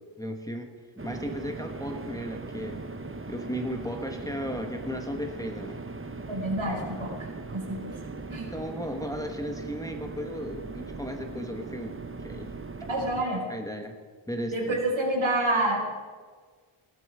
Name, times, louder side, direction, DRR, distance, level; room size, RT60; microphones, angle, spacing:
voice 1, 0.2-2.8 3.3-5.8 8.5-12.5 13.5-14.0 14.3-14.8, equal, 5° left, 4 dB, 1.4 m, -35 dB
sound 1, 1.0-13.3, right 3 dB, 25° right, 1.0 m, -39 dB
voice 2, 6.3-7.9 8.3-8.5 12.9-13.4 14.5-15.9, right 1 dB, 70° right, -1 dB, 4.9 m, -28 dB
17.0 x 13.0 x 4.9 m, 1.5 s
wide cardioid pair, 85°, 50 cm